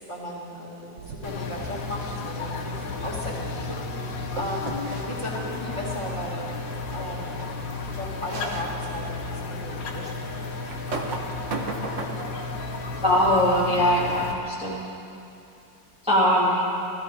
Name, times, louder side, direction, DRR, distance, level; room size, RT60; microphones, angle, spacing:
voice 1, 0.0-6.5 6.9-10.5 10.8-11.9, left 1 dB, 15° left, -5 dB, 2.3 m, -36 dB
sound 1, 1.0-1.5 4.4-5.0 6.9-7.0 7.4-7.5 8.2-8.7 9.3-9.4 10.7-12.4, right 3 dB, 50° right, 1.2 m, -34 dB
all day, 1.2-14.3, left 3 dB, 85° left, 1.7 m, -33 dB
voice 2, 13.0-14.8 16.0-16.7, equal, 5° right, -8 dB, 1.9 m, -21 dB
15.0 x 13.5 x 4.8 m, 2.7 s
omnidirectional pair, 2.0 m